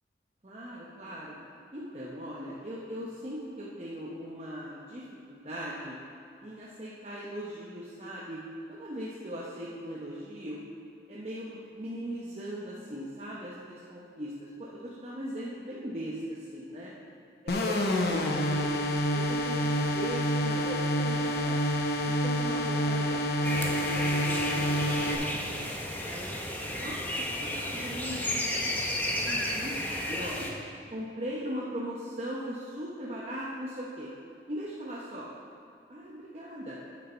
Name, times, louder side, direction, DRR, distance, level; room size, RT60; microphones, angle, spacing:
voice 1, 0.4-1.4 1.7-5.9 6.4-8.4 8.7-10.6 11.1-16.9 17.4-21.6 22.1-25.3 26.0-28.8 29.1-30.5 30.9-34.1 34.5-35.3 35.9-36.8, equal, 35° right, -6 dB, 0.8 m, -39 dB
sound 1, 17.5-25.2, equal, 60° left, 0.7 m, -28 dB
sound 2, 23.4-30.5, left 1 dB, 10° left, 0.7 m, -33 dB
8.5 x 6.6 x 4.4 m, 2.7 s
head